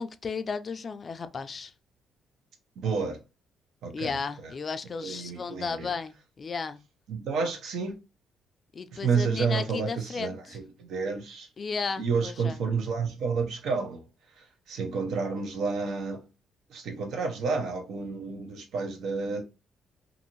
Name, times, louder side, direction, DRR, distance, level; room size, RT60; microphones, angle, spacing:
voice 1, 0.0-1.7 3.9-6.8 8.7-10.6 11.6-12.6, left 5 dB, 40° left, 0.3 m, -34 dB
voice 2, 2.8-3.2 3.8-4.2 5.0-5.9 7.1-7.9 8.9-11.5 12.0-14.0 14.4-16.2 16.7-19.4, right 5 dB, 75° right, 0.7 m, -30 dB
2.6 x 2.6 x 2.8 m
cardioid pair, 90°, 0 cm